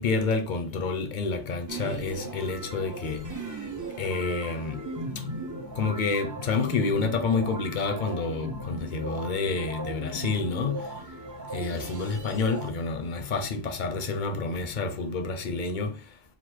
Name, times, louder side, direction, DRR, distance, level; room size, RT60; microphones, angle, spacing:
voice 1, 0.0-3.2 4.0-4.8 5.7-10.9 11.5-15.9, left 4 dB, 45° left, 0.7 m, -29 dB
sound 1, 1.7-12.7, right 2 dB, 25° right, 0.4 m, -37 dB
4.1 x 2.4 x 4.4 m
omnidirectional pair, 1.3 m